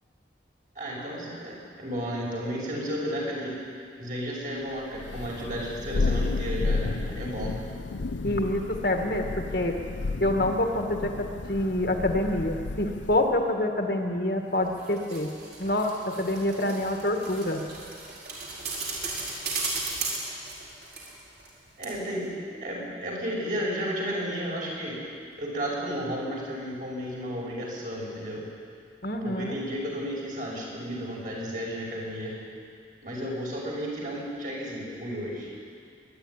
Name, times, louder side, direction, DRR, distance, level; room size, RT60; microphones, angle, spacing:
voice 1, 0.8-3.5 4.0-7.6 21.8-22.3 22.6-25.0 25.4-28.4 29.2-32.4 33.0-35.5, equal, 45° right, -3 dB, 6.1 m, -33 dB
Thunder, 4.9-13.4, left 3 dB, 90° left, 0.7 m, -32 dB
voice 2, 8.2-9.8 10.2-15.3 15.6-17.6 29.0-29.6, left 1 dB, 55° left, 3 dB, 1.8 m, -27 dB
sound 1, 14.6-21.6 21.8-21.9, right 3 dB, 60° right, 4.8 m, -36 dB
23.5 x 11.0 x 9.9 m, 2.3 s
head